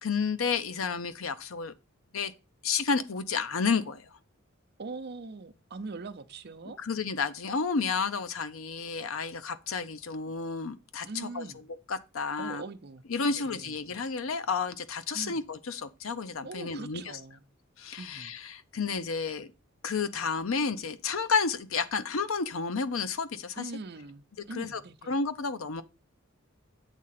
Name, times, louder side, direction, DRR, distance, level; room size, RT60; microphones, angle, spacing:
voice 1, 0.0-1.7 2.1-2.3 2.6-4.1 6.8-11.4 11.9-12.6 13.1-17.0 17.8-19.5 19.8-23.6 24.5-24.8 25.1-25.8, left 5 dB, 85° left, 0.7 m, -31 dB
voice 2, 4.8-6.8 11.0-11.7 12.4-13.0 13.3-13.8 15.1-15.4 16.4-17.4 18.0-18.4 23.6-25.2, right 3 dB, 50° right, 0.6 m, -42 dB
8.2 x 3.7 x 5.8 m
head